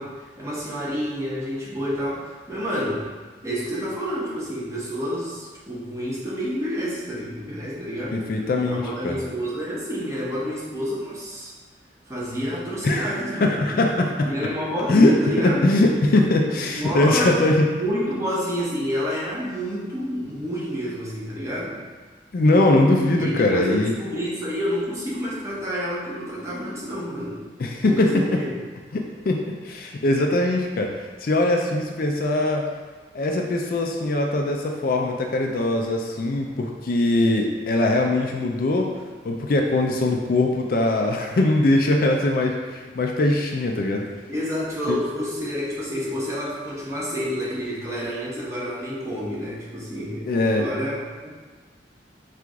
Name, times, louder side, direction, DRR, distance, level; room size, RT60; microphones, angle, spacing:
voice 1, 0.0-3.1 3.4-8.2 8.7-11.5 12.1-13.6 14.3-15.7 16.5-17.5 17.8-21.8 23.1-27.4 27.8-28.5 44.3-51.3, equal, 15° right, -7 dB, 0.8 m, -29 dB
voice 2, 8.1-9.2 12.8-13.1 13.4-14.3 14.9-17.7 22.3-23.9 27.6-28.1 28.9-30.9 31.2-32.6 33.1-38.9 39.2-44.0 44.9-45.0 50.3-50.6, left 2 dB, 55° left, 2 dB, 0.4 m, -21 dB
4.5 x 2.5 x 3.6 m, 1.4 s
head